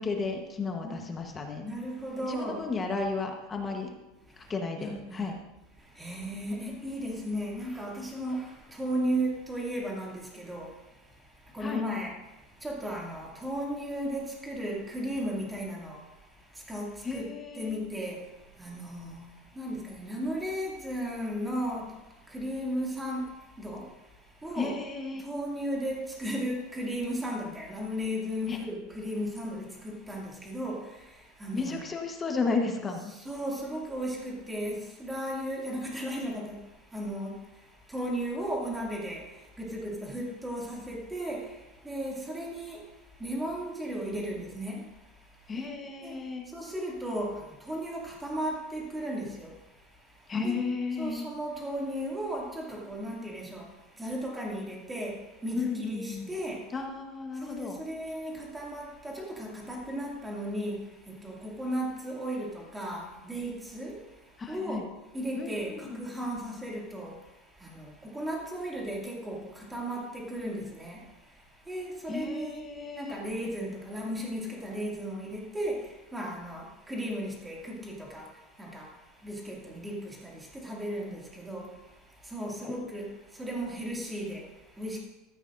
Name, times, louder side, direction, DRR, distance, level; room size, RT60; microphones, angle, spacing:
voice 1, 0.0-1.6 2.2-3.9 4.4-5.3 11.6-11.8 17.0-17.8 24.5-25.2 28.5-28.6 31.5-33.0 45.5-46.5 50.3-51.3 55.6-56.3 56.7-57.8 64.4-64.8 65.4-66.1 72.1-73.2 82.6-82.7, left 4 dB, 15° left, 3 dB, 1.1 m, -33 dB
voice 2, 1.6-2.6 4.3-4.5 4.8-5.3 5.8-17.3 17.6-24.8 25.2-31.8 33.1-45.5 46.0-46.2 46.5-50.6 51.0-56.7 57.3-64.9 65.1-72.7 73.0-85.0, equal, 5° right, -3 dB, 2.3 m, -36 dB
15.0 x 14.0 x 2.6 m, 1.0 s
supercardioid pair, 170°, 0 cm